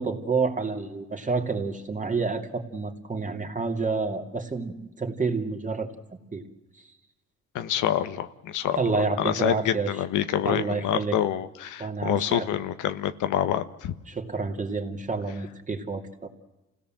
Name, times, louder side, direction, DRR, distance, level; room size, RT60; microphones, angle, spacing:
voice 1, 0.0-5.9 6.3-6.4 8.7-9.9 10.4-11.2 11.8-12.5 14.1-16.3, right 4 dB, 25° right, 4 dB, 2.7 m, -29 dB
voice 2, 7.5-8.8 9.2-13.9, left 10 dB, 80° left, 10 dB, 1.2 m, -27 dB
27.5 x 17.0 x 7.6 m, 1.0 s
cardioid pair, 90°, 30 cm